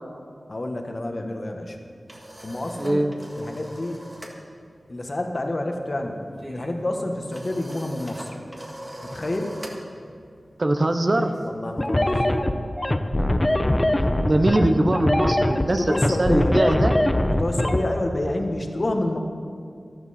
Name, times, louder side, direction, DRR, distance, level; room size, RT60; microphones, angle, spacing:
voice 1, 0.5-1.8 2.4-3.1 3.4-4.1 4.9-6.2 6.5-8.4 9.0-9.6 11.4-12.2 15.9-16.6 17.3-19.2, left 1 dB, 45° left, 3 dB, 1.3 m, -28 dB
sound 1, 1.7-4.4 4.7-5.0 5.2-11.9, right 1 dB, 30° right, 1.8 m, -42 dB
voice 2, 2.8-3.1 10.6-11.3 14.2-15.8 16.2-16.9, right 1 dB, 45° right, 6 dB, 0.8 m, -21 dB
sound 2, 11.8-17.8, left 1 dB, 25° left, 0.8 m, -21 dB
12.5 x 12.5 x 4.3 m, 2.3 s
cardioid pair, 45°, 0 cm